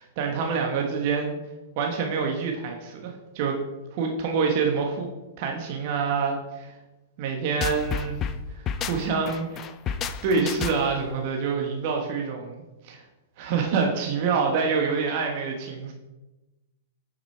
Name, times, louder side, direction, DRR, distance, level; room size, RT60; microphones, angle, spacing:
voice 1, 0.0-1.4 1.8-3.6 3.9-5.1 5.4-6.7 7.2-8.2 8.5-13.0 13.4-15.9, right 5 dB, 50° right, 2 dB, 1.3 m, -27 dB
sound 1, 7.6-11.1, left 7 dB, 30° left, 0.5 m, -31 dB
8.4 x 5.9 x 4.5 m, 1.1 s
hypercardioid pair, 110°, 0 cm